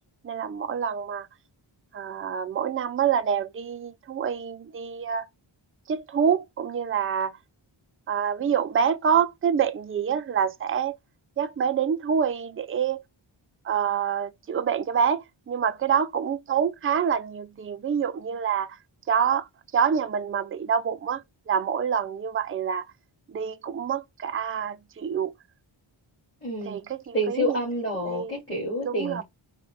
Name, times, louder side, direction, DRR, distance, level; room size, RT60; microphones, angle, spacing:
voice 1, 0.2-1.3 1.9-5.3 5.9-7.3 8.1-11.0 11.4-13.0 13.6-18.8 19.1-19.5 19.7-22.9 23.3-25.3 26.6-27.6 28.0-28.3 28.9-29.2, right 7 dB, 30° right, 0.4 m, -26 dB
voice 2, 26.4-26.8 27.1-29.2, equal, 25° left, 2.4 m, -28 dB
4.6 x 2.4 x 3.4 m
wide cardioid pair, 135°, 48 cm